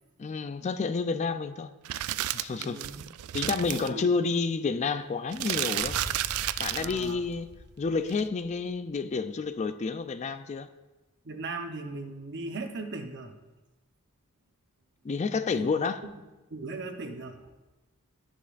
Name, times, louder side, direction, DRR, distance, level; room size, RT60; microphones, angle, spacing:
voice 1, 0.2-1.7 2.3-2.8 3.3-6.0 6.6-7.5 7.8-10.7 15.0-16.0, left 4 dB, 30° left, 0.3 m, -29 dB
sound 1, 1.8-3.9 5.3-7.1 8.1-8.2, right 13 dB, 75° right, 0.3 m, -32 dB
voice 2, 2.5-3.1 3.8-4.3 6.7-7.2 11.2-13.4 15.5-15.7 16.5-17.5, right 3 dB, 50° right, 0.9 m, -38 dB
sound 2, 5.8-8.7, equal, 15° left, 2.0 m, -44 dB
12.5 x 10.0 x 2.5 m
head